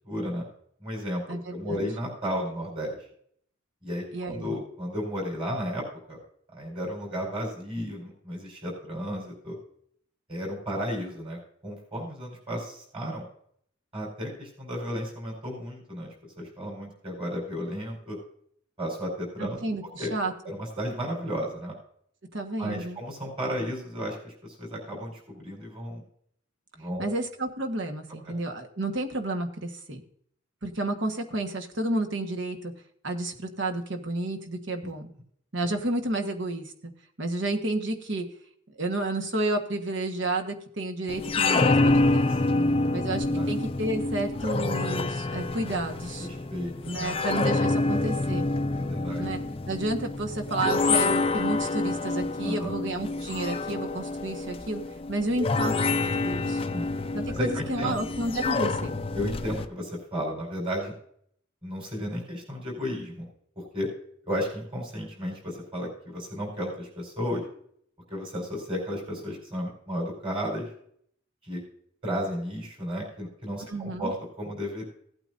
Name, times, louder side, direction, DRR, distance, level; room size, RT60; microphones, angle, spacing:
voice 1, 0.0-0.4 0.8-1.2 1.5-3.0 3.8-6.2 6.5-9.6 10.3-13.2 13.9-18.2 18.8-19.6 20.0-20.1 20.4-21.8 22.6-26.0 26.8-27.2 28.3-28.4 42.5-43.0 43.3-43.5 46.2-47.2 48.9-49.2 52.4-52.7 56.7-56.9 57.3-58.0 59.1-60.9 61.6-63.3 63.7-63.9 64.3-67.4 68.1-70.7 71.4-71.6 72.0-74.8, equal, 25° right, -1 dB, 4.7 m, -33 dB
voice 2, 1.3-1.8 4.1-4.6 19.4-20.3 22.3-23.0 27.0-30.0 30.6-32.7 33.0-35.1 35.5-36.7 37.2-38.2 38.8-42.3 42.9-46.3 46.8-48.5 49.2-49.4 49.7-54.8 55.1-56.6 57.1-59.0 73.7-74.1, right 2 dB, 55° right, 4 dB, 1.4 m, -31 dB
sound 1, 41.1-59.7, left 3 dB, 25° left, 0.4 m, -27 dB
17.0 x 8.9 x 2.6 m, 0.65 s
head